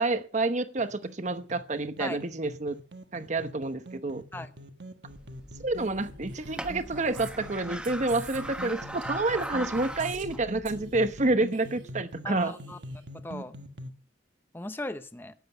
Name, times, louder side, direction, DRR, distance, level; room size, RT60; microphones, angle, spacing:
voice 1, 0.0-2.8 3.1-4.2 5.6-12.5, right 2 dB, 40° right, 1.0 m, -29 dB
sound 1, 0.8-13.9, equal, 65° right, 1.4 m, -44 dB
sound 2, 5.1-11.3, right 1 dB, 5° right, 1.2 m, -40 dB
Female speech woman speaking, 5.8-10.4 10.7-11.2 11.5-12.1 12.4-13.1, right 6 dB, 90° right, 3.5 m, -50 dB
voice 2, 12.2-12.8 13.1-13.6 14.5-15.3, left 2 dB, 10° left, 0.8 m, -38 dB
13.5 x 10.0 x 5.6 m
head